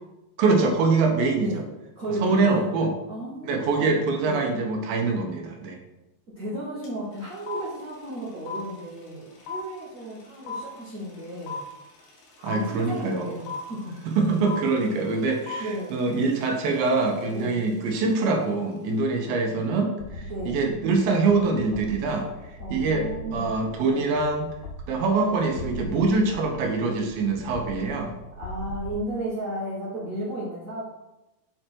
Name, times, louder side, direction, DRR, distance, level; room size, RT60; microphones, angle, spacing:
voice 1, 0.4-1.6 2.2-2.9 3.4-5.8 12.4-13.3 14.1-22.3 22.7-24.5 24.9-28.1, right 3 dB, 85° right, 3 dB, 2.7 m, -24 dB
voice 2, 1.9-2.7 3.1-3.9 4.2-4.5 6.4-11.6 12.4-14.0 15.1-15.3 15.6-16.0 17.3-17.6 20.2-20.6 22.6-23.5 23.9-24.1 28.4-30.8, right 1 dB, 65° right, -9 dB, 0.8 m, -34 dB
sound 1, 6.8-6.9 7.1-18.3, left 4 dB, 75° left, 3.1 m, -38 dB
sound 2, 20.0-29.0, right 2 dB, 90° left, 2.5 m, -40 dB
6.5 x 4.4 x 4.4 m, 0.96 s
omnidirectional pair, 4.1 m